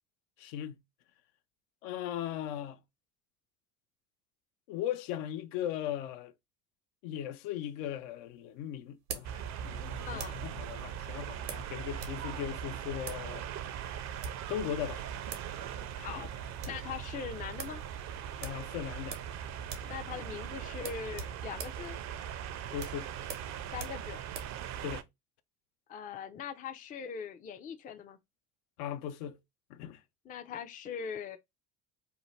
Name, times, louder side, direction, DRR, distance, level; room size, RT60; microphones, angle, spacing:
voice 1, 0.4-0.8 1.8-2.8 4.7-6.3 7.0-13.5 14.5-15.0 18.4-19.2 22.7-23.1 24.8-25.0 28.8-29.4 29.7-30.0, left 10 dB, 70° left, 0.6 m, -38 dB
sound 1, 7.6-10.5 11.5-12.2 12.5-12.6 13.0-13.3 14.0-14.5 15.0-15.1 15.3-15.5 15.8-15.9 16.3-16.9 17.2-17.3 17.6-17.8 18.4-19.4 19.6-20.0 20.2-20.4 20.8-24.6, right 6 dB, 85° right, 0.8 m, -44 dB
sound 2, 9.2-25.0, right 9 dB, 40° right, 0.4 m, -40 dB
voice 2, 10.1-10.4 15.9-17.8 19.8-22.0 23.7-24.2 25.9-28.2 30.2-31.4, left 7 dB, 20° left, 0.3 m, -41 dB
2.7 x 2.1 x 3.1 m
hypercardioid pair, 70°, 46 cm